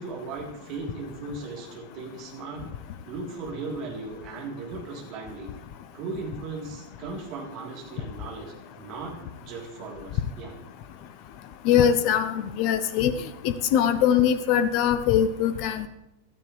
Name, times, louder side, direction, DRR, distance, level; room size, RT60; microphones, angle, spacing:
voice 1, 0.0-2.6 3.1-5.5 5.9-10.6, right 3 dB, 40° right, -1 dB, 3.6 m, -37 dB
voice 2, 11.6-13.1 13.4-15.9, left 9 dB, 45° left, 12 dB, 0.8 m, -22 dB
15.5 x 13.0 x 3.3 m, 0.88 s
figure-of-eight pair, 90°, 0 cm